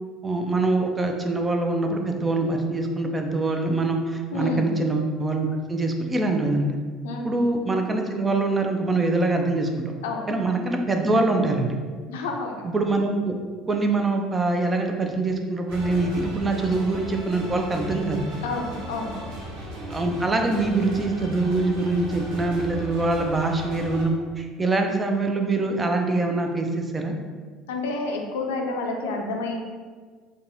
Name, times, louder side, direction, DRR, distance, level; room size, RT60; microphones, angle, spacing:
voice 1, 0.2-6.8 7.2-9.7 10.3-11.7 12.6-13.4 13.7-18.2 19.9-27.1, right 2 dB, 25° right, 3 dB, 0.5 m, -24 dB
voice 2, 4.3-4.7 7.0-7.2 10.0-10.3 12.1-12.7 18.4-19.2 27.7-29.6, left 3 dB, 75° left, 2 dB, 0.4 m, -29 dB
sound 1, 15.7-24.1, equal, 65° right, 0.6 m, -36 dB
3.9 x 2.3 x 2.6 m, 1.5 s
hypercardioid pair, 65°, 0 cm